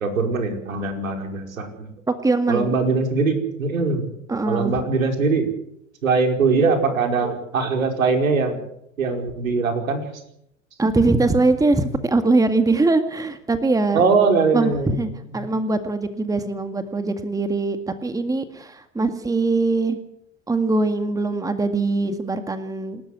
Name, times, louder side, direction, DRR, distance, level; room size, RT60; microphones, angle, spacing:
voice 1, 0.0-1.9 2.5-4.1 4.5-5.5 6.0-8.6 9.0-10.1 13.9-15.0 15.3-15.4, right 4 dB, 75° right, 4 dB, 5.2 m, -21 dB
voice 2, 2.1-2.8 4.3-4.7 10.8-14.0 14.5-20.0 20.5-23.0, right 3 dB, 10° right, 9 dB, 1.9 m, -22 dB
28.5 x 13.5 x 8.2 m, 0.75 s
hypercardioid pair, 90°, 41 cm